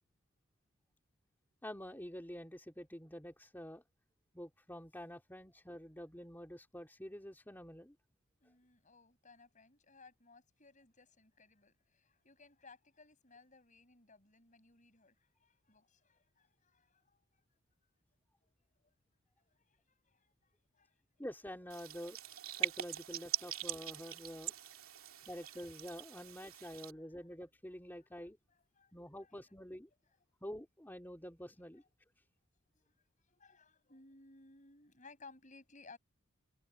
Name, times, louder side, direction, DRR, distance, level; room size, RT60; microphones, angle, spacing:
voice 1, 1.6-3.8 4.3-7.9 21.2-22.2 22.5-24.5 25.3-28.4 28.9-29.9 30.4-31.8, equal, 10° left, 3.0 m, -48 dB
voice 2, 8.4-17.2 19.5-20.9 23.3-23.5 24.5-24.6 25.0-25.6 26.3-26.4 28.8-28.9 32.9-33.0 33.3-36.0, left 3 dB, 35° left, 7.4 m, -61 dB
sound 1, 21.7-26.9, right 12 dB, 75° right, 2.5 m, -42 dB
head